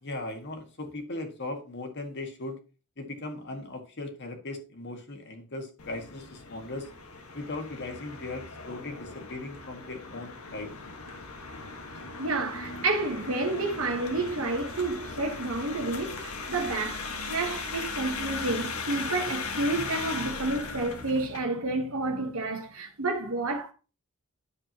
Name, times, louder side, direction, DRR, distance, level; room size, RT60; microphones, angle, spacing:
voice 1, 0.0-2.6 3.0-6.9 7.3-10.7, left 2 dB, 55° left, 1.8 m, -38 dB
sound 1, 5.8-21.4, left 4 dB, 85° left, 1.5 m, -38 dB
voice 2, 12.2-23.7, right 2 dB, 75° right, 1.2 m, -30 dB
10.0 x 7.1 x 2.9 m
head